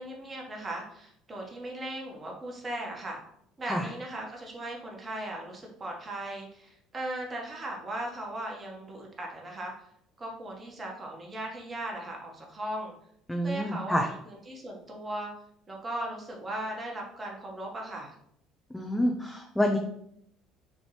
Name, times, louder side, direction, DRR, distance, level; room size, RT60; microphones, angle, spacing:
voice 1, 0.0-3.2 3.6-9.7 10.2-12.9 13.4-15.3 15.7-18.1, right 1 dB, 30° right, -1 dB, 1.5 m, -38 dB
voice 2, 13.3-14.1 18.7-19.8, equal, 5° left, 1 dB, 0.6 m, -27 dB
5.4 x 2.9 x 3.3 m, 0.72 s
hypercardioid pair, 65°, 0 cm